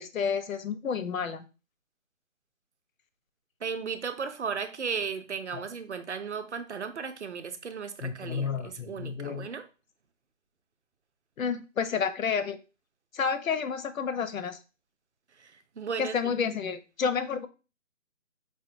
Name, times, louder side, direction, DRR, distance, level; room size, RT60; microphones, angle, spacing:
voice 1, 0.0-1.5 5.5-5.6 8.0-9.5 11.4-12.6 13.1-14.6 16.0-17.5, left 6 dB, 90° left, 0.6 m, -30 dB
voice 2, 3.6-9.7 15.4-16.3, right 6 dB, 60° right, 0.6 m, -35 dB
4.9 x 2.2 x 2.6 m
hypercardioid pair, 180°, 39 cm